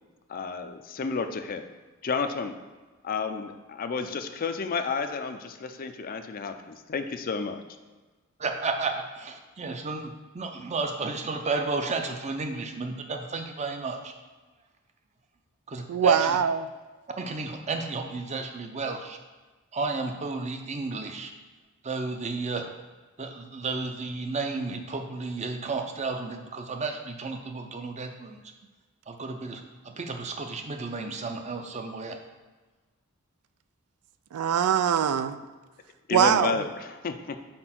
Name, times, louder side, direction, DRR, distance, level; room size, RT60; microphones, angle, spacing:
voice 1, 0.3-1.6 2.0-2.5 3.0-7.6 36.1-37.4, left 5 dB, 40° left, 8 dB, 0.4 m, -31 dB
voice 2, 8.4-14.1 15.7-16.4 17.2-19.2 19.7-21.3 21.8-22.7 23.2-28.4 29.1-32.2, right 4 dB, 30° right, 5 dB, 0.6 m, -32 dB
voice 3, 15.9-16.7 34.3-35.4 36.1-36.6, right 8 dB, 80° right, 11 dB, 0.3 m, -23 dB
4.4 x 4.3 x 5.8 m, 1.3 s
head